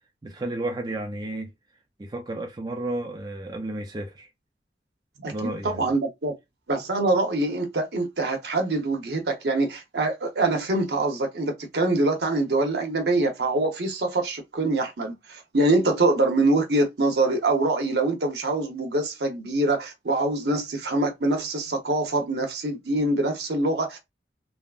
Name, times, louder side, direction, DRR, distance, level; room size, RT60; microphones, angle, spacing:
voice 1, 0.2-1.5 2.0-4.3 5.3-5.9, right 1 dB, 25° right, 0.4 m, -32 dB
voice 2, 5.2-6.3 6.7-24.0, right 2 dB, 70° right, 0.8 m, -24 dB
3.4 x 2.0 x 2.3 m
head